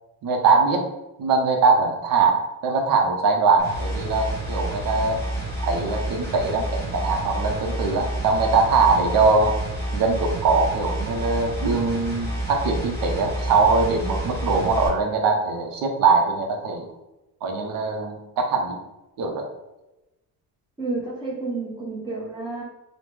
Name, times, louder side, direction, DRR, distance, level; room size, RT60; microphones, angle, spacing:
voice 1, 0.2-0.8 1.2-5.2 5.6-9.6 9.9-16.9 17.4-18.8 19.2-19.5, right 4 dB, 60° right, 2 dB, 0.7 m, -22 dB
sound 1, 3.6-14.9, right 1 dB, 10° left, 1.0 m, -29 dB
voice 2, 20.8-22.6, right 3 dB, 15° right, -5 dB, 0.7 m, -30 dB
3.0 x 2.1 x 3.3 m, 0.99 s
cardioid pair, 175°, 38 cm